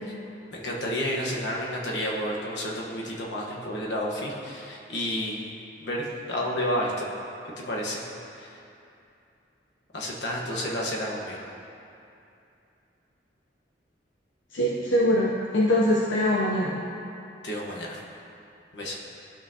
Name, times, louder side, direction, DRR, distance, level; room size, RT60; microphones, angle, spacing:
voice 1, 0.5-5.4 5.8-7.0 7.6-8.1 8.4-8.5 9.9-11.4 17.4-18.0 18.7-19.0, equal, 70° left, -3 dB, 1.2 m, -30 dB
voice 2, 14.5-16.8, left 1 dB, 90° left, -4 dB, 0.6 m, -23 dB
12.0 x 5.6 x 2.8 m, 2.7 s
head